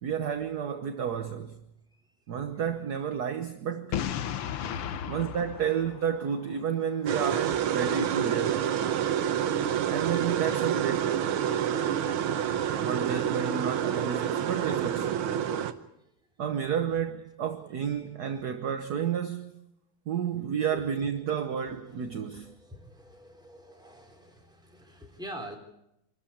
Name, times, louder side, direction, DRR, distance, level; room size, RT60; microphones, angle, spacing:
voice 1, 0.0-1.6 2.3-4.0 5.1-8.7 9.9-11.4 12.8-15.2 16.4-19.7 20.1-22.5, right 8 dB, 55° right, 1.3 m, -31 dB
voice 2, 2.5-3.1 4.3-4.9 7.5-7.6 17.8-18.0 18.2-18.4 20.6-25.6, equal, ahead, 3.6 m, -48 dB
Boom, 3.9-6.8, left 9 dB, 75° left, 1.8 m, -34 dB
sound 1, 7.0-15.7, right 9 dB, 75° right, 1.8 m, -28 dB
26.5 x 13.0 x 8.5 m
omnidirectional pair, 2.4 m